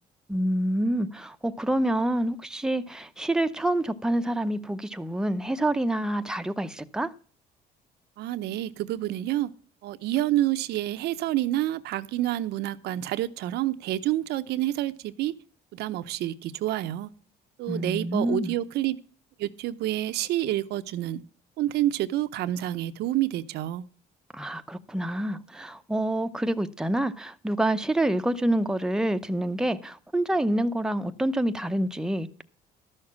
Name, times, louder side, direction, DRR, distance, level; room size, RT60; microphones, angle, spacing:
voice 1, 0.3-7.1 17.7-18.6 24.3-32.4, right 1 dB, 5° right, 0.8 m, -27 dB
voice 2, 8.2-9.5 9.8-15.3 15.7-17.1 17.6-19.0 19.4-21.2 21.6-23.8, right 14 dB, 80° right, 0.8 m, -28 dB
12.5 x 6.5 x 7.3 m
cardioid pair, 110°, 17 cm